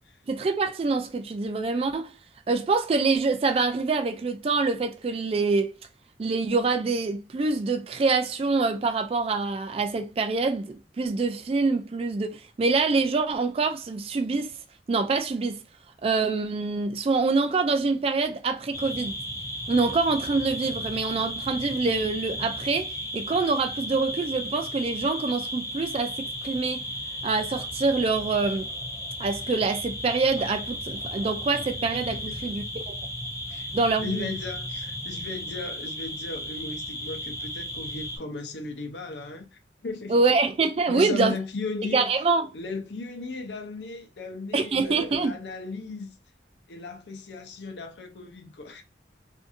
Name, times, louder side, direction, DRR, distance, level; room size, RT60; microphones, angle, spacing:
voice 1, 0.3-2.1 2.5-5.7 6.2-14.5 14.9-15.6 16.0-19.1 19.7-26.8 27.2-28.7 29.2-33.0 33.7-34.3 40.1-41.4 41.9-42.5 44.5-45.3, right 4 dB, 35° right, 0.3 m, -25 dB
sound 1, 18.7-38.2, equal, 20° left, 0.5 m, -35 dB
voice 2, 32.1-32.5 33.5-33.7 34.0-40.2 40.9-42.1 42.5-46.1 46.7-48.8, left 3 dB, 80° left, 0.6 m, -36 dB
2.6 x 2.5 x 2.5 m
head